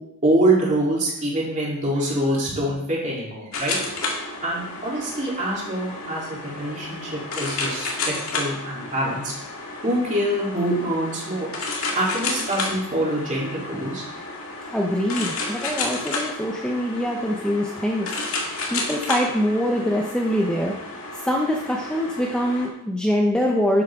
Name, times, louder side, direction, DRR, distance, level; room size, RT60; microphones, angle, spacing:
voice 1, 0.2-3.8 4.4-7.9 8.4-9.3 9.8-11.5 11.9-14.0, right 1 dB, 35° right, -5 dB, 3.8 m, -24 dB
sound 1, 3.5-22.7, left 3 dB, 65° left, 2.3 m, -32 dB
voice 2, 14.7-18.1 18.7-20.7 21.2-23.8, equal, 5° left, -1 dB, 1.0 m, -24 dB
12.5 x 8.3 x 3.9 m, 0.76 s
head